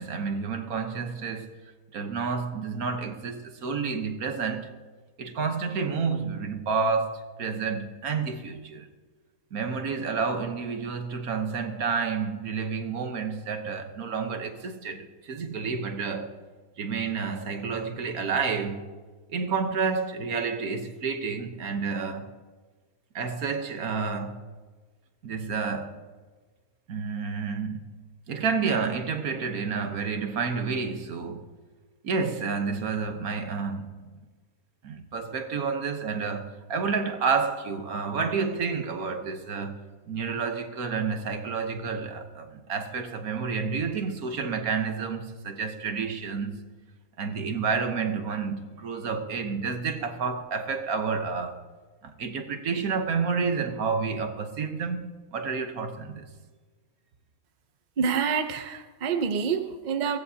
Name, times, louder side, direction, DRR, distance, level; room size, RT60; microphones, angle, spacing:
voice 1, 0.0-1.5 1.9-4.7 5.2-8.9 9.5-16.4 16.8-18.8 19.3-22.3 23.1-24.4 25.2-26.0 26.9-27.9 28.3-31.5 32.0-33.9 34.8-46.6 47.2-51.6 52.0-56.3, right 5 dB, 70° right, 1.5 m, -30 dB
voice 2, 58.0-60.2, right 6 dB, 40° right, 0.7 m, -27 dB
23.0 x 16.5 x 2.8 m
omnidirectional pair, 1.6 m